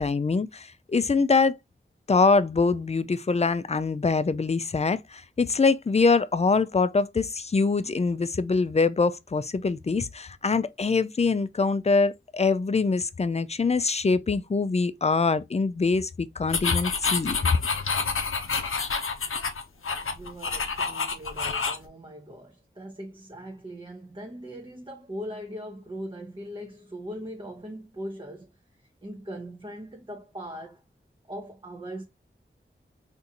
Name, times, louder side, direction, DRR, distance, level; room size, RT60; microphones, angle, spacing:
voice 1, 0.0-1.6 2.1-17.4, left 4 dB, 30° left, 0.4 m, -24 dB
sound 1, 16.5-21.9, left 5 dB, 85° left, 0.5 m, -28 dB
voice 2, 20.1-28.5 29.0-30.8 31.3-32.0, equal, 25° right, 0.6 m, -40 dB
3.8 x 2.6 x 2.7 m
wide cardioid pair, 45°, 21 cm